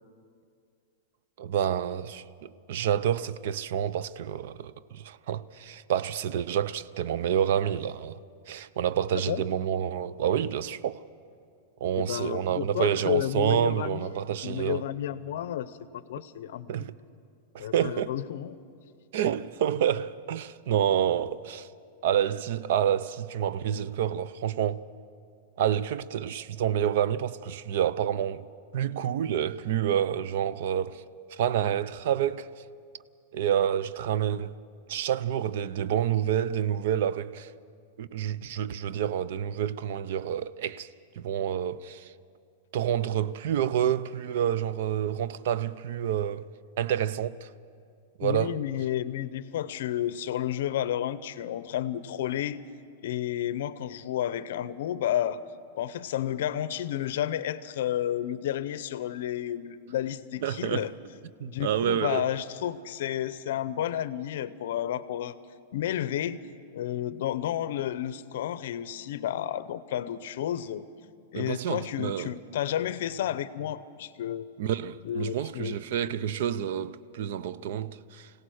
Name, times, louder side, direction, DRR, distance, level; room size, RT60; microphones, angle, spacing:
voice 1, 1.4-8.2 8.5-11.0 11.8-14.8 16.7-16.9 17.5-18.1 19.1-21.7 22.0-24.8 25.6-28.5 28.7-31.0 31.3-32.5 33.3-34.6 34.9-37.5 38.0-40.9 41.2-42.1 42.7-46.5 46.8-47.5 48.2-48.6 60.4-60.9 61.4-62.2 71.3-72.3 74.6-78.3, right 9 dB, 55° right, 0.5 m, -28 dB
voice 2, 11.9-14.1 14.4-16.9 17.6-18.6 48.2-52.6 53.0-55.4 55.8-60.9 61.4-65.4 65.7-66.4 66.7-70.8 71.3-74.5 75.0-75.8, left 11 dB, 60° left, 0.6 m, -31 dB
25.0 x 17.0 x 6.4 m
supercardioid pair, 175°, 0 cm